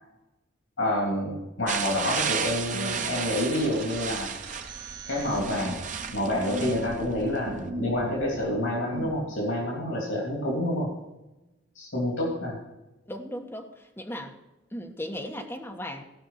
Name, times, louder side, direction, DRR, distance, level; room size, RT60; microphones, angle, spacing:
voice 1, 0.8-4.3 5.1-5.8 6.1-10.9 11.7-12.6, left 1 dB, 80° left, -2 dB, 3.1 m, -28 dB
sound 1, 1.7-7.7, right 6 dB, 40° right, 0.8 m, -34 dB
voice 2, 2.7-3.1 13.1-14.3 14.7-16.0, equal, 10° left, 2 dB, 1.3 m, -37 dB
sound 2, 3.4-9.2, right 1 dB, 60° right, 1.5 m, -39 dB
17.0 x 5.7 x 5.8 m, 0.99 s
head